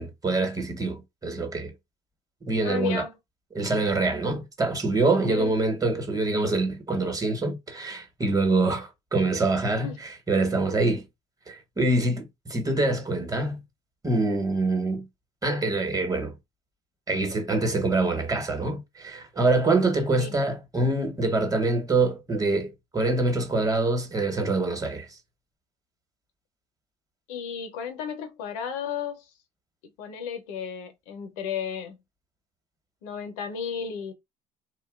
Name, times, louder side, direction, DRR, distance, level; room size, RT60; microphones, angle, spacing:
voice 1, 0.0-1.7 2.4-3.0 3.5-11.0 11.5-13.6 14.0-15.0 15.4-16.3 17.1-25.1, right 2 dB, 20° right, 1.1 m, -25 dB
voice 2, 2.6-3.1 5.3-5.6 9.8-10.0 20.2-20.3 27.3-29.3 30.0-32.0 33.0-34.1, left 7 dB, 80° left, 0.6 m, -33 dB
2.8 x 2.2 x 2.3 m
hypercardioid pair, 65°, 17 cm